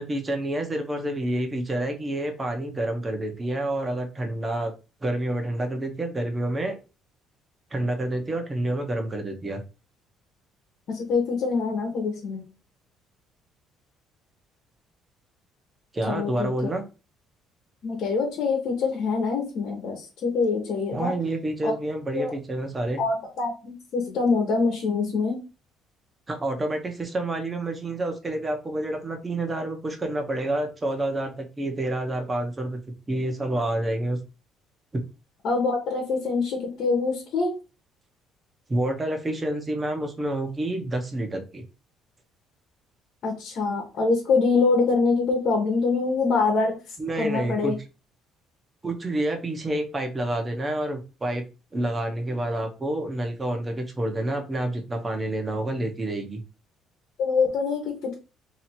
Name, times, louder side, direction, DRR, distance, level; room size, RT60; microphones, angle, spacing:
voice 1, 0.0-4.7 5.0-6.8 7.7-9.6 15.9-16.8 20.9-23.0 26.3-32.8 33.1-34.2 34.9-35.0 38.7-41.6 47.0-47.8 48.8-51.4 51.7-56.4, right 1 dB, 20° right, 4 dB, 1.0 m, -28 dB
voice 2, 10.9-12.4 16.1-16.5 17.8-21.1 21.6-21.7 22.1-22.3 23.0-25.4 35.4-37.5 43.2-46.8 47.1-47.7 57.2-58.1, left 4 dB, 60° left, 1 dB, 1.2 m, -24 dB
3.0 x 2.8 x 4.3 m, 0.31 s
cardioid pair, 105°, 0 cm